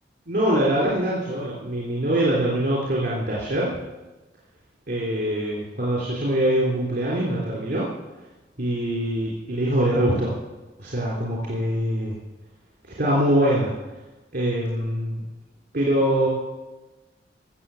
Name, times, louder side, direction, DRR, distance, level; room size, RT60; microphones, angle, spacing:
voice 1, 0.3-3.7 4.9-7.9 8.6-10.3 10.8-12.2 12.8-13.7 14.3-15.2 15.7-16.3, right 1 dB, 50° right, -5 dB, 3.4 m, -23 dB
17.0 x 7.0 x 7.0 m, 1.1 s
head